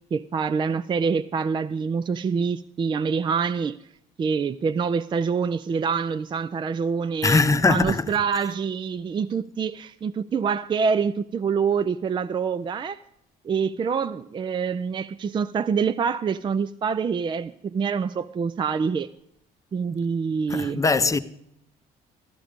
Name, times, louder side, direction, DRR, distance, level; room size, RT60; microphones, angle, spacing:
voice 1, 0.1-3.8 4.2-13.0 13.4-19.1 19.7-20.8, right 6 dB, 30° right, 0.4 m, -26 dB
voice 2, 7.2-8.2 20.5-21.2, left 4 dB, 20° left, 0.7 m, -21 dB
14.5 x 11.5 x 5.1 m
cardioid pair, 110°, 17 cm